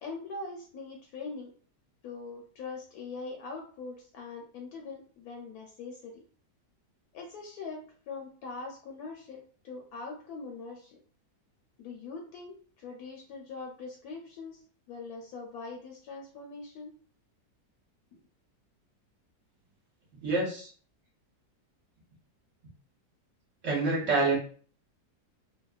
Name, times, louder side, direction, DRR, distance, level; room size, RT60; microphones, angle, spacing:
voice 1, 0.0-1.5 2.0-6.2 7.1-7.8 8.1-11.0 11.8-14.6 14.9-16.9 18.1-18.2, left 4 dB, 75° left, 1 dB, 1.0 m, -42 dB
voice 2, 20.1-20.7 23.6-24.3, right 3 dB, 55° right, -4 dB, 1.1 m, -27 dB
2.8 x 2.0 x 2.3 m, 0.43 s
omnidirectional pair, 1.7 m